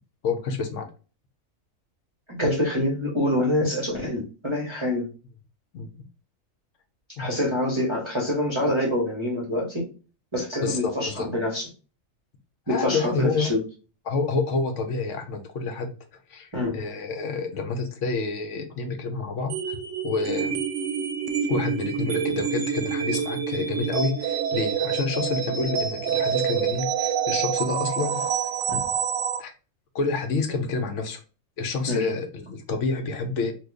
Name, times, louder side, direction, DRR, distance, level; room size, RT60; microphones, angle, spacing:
voice 1, 0.2-0.9 5.7-5.9 7.2-7.4 10.6-11.3 12.7-13.5 14.1-15.9 16.3-19.8 20.0-20.6 21.5-28.2 29.4-29.5 29.9-31.2 31.6-33.5, left 4 dB, 65° left, 7 dB, 0.9 m, -28 dB
voice 2, 2.3-5.1 7.2-9.9 10.3-11.6 12.7-13.6 16.5-16.8 28.7-28.8 31.9-32.0, left 1 dB, 30° right, -3 dB, 0.6 m, -26 dB
sound 1, 19.5-29.4, right 8 dB, 70° right, 0.9 m, -27 dB
3.0 x 2.2 x 3.6 m, 0.34 s
omnidirectional pair, 1.4 m